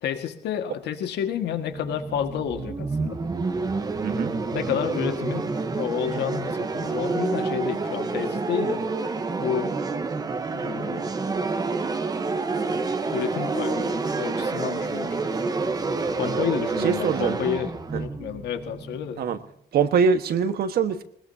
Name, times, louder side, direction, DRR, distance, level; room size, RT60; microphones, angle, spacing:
voice 1, 0.0-3.2 4.5-8.8 9.4-9.7 10.5-11.1 13.1-15.3 16.1-19.2, left 9 dB, 85° left, 6 dB, 1.8 m, -30 dB
sound 1, 1.5-19.3, right 3 dB, 20° right, 1.1 m, -28 dB
voice 2, 4.0-4.3 16.2-16.4 16.8-17.4 19.2-19.4 19.7-21.0, right 6 dB, 65° right, 9 dB, 1.4 m, -23 dB
21.0 x 20.5 x 2.8 m, 0.70 s
cardioid pair, 155°, 17 cm